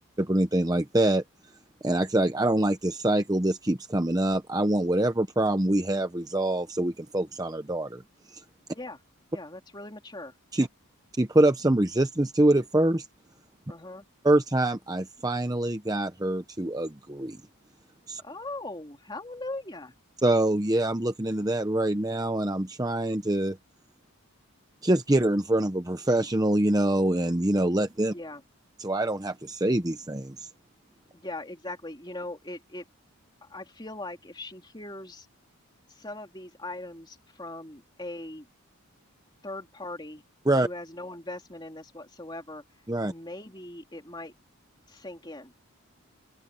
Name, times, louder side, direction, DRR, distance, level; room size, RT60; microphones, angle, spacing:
voice 1, 0.2-1.2 1.8-8.0 8.3-8.4 10.5-10.7 11.2-13.1 14.2-17.4 18.1-18.2 20.2-23.6 24.8-28.1 28.8-30.5 40.5-40.7 42.9-43.1, right 1 dB, 15° right, 0.8 m, -25 dB
voice 2, 9.3-10.3 13.7-14.0 18.2-19.9 28.1-28.4 31.1-32.8 33.4-35.3 35.9-38.5 39.4-40.2 40.6-42.6 43.1-44.3 44.9-45.7, left 2 dB, 20° left, 3.3 m, -40 dB
open air
head